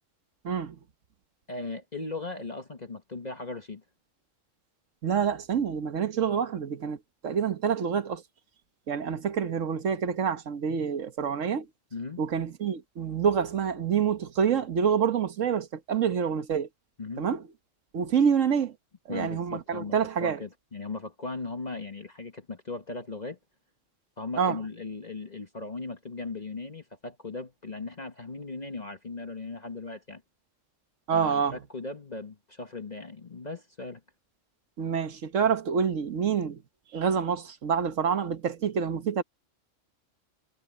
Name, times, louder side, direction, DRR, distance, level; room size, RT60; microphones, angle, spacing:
voice 1, 0.4-0.8 5.0-7.0 7.2-8.2 8.9-11.7 12.2-16.7 17.2-17.4 17.9-18.7 19.1-20.4 24.4-24.6 31.1-31.6 34.8-36.6 36.9-39.2, right 7 dB, 80° right, 1.5 m, -27 dB
voice 2, 1.5-3.8 11.9-12.2 17.0-17.3 19.1-23.4 24.2-30.2 31.1-34.0, left 3 dB, 35° left, 1.5 m, -38 dB
omnidirectional pair, 1.3 m